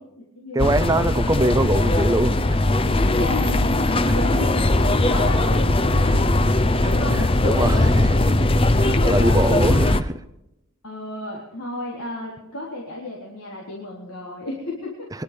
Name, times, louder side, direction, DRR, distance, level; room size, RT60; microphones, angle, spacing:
voice 1, 0.0-1.0 3.2-4.6 4.8-8.2 8.8-9.6 10.8-15.1, left 2 dB, 75° left, -4 dB, 3.6 m, -33 dB
voice 2, 0.5-2.8 4.1-4.2 6.0-6.2 6.8-8.2 8.6-10.2, right 1 dB, 15° right, 13 dB, 0.6 m, -24 dB
sound 1, 0.6-10.0, left 2 dB, 25° left, 0.7 m, -19 dB
23.0 x 11.5 x 5.1 m, 0.88 s
head